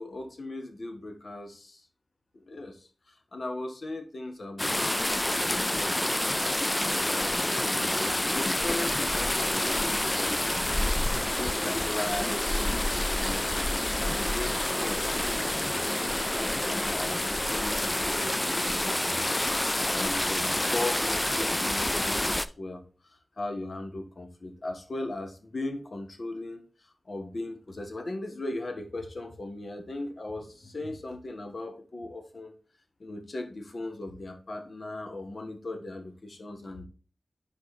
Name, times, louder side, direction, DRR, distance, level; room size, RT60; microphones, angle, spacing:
voice 1, 0.0-1.8 2.4-6.0 6.7-10.7 11.4-12.6 13.2-13.5 14.0-15.1 15.4-15.8 16.2-19.2 19.9-22.8 23.4-26.6 27.1-32.5 33.0-36.8, left 2 dB, 65° left, 5 dB, 1.4 m, -38 dB
sound 1, 4.6-22.5, left 1 dB, 20° left, 0.4 m, -28 dB
5.1 x 5.0 x 4.3 m, 0.36 s
cardioid pair, 45°, 0 cm